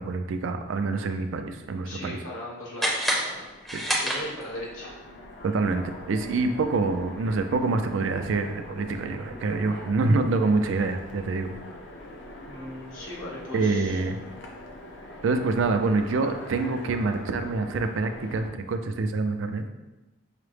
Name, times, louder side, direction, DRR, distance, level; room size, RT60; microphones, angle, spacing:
voice 1, 0.0-2.2 3.7-3.8 5.4-11.5 13.5-14.2 15.2-19.7, right 3 dB, 70° right, 7 dB, 0.4 m, -26 dB
voice 2, 1.8-3.4 4.0-4.9 12.4-14.0, left 1 dB, 80° left, -5 dB, 1.3 m, -38 dB
sound 1, 2.8-4.7, equal, ahead, 0.5 m, -28 dB
Train, 3.1-18.5, left 1 dB, 60° left, 0.5 m, -44 dB
5.7 x 2.0 x 3.2 m, 1.1 s
head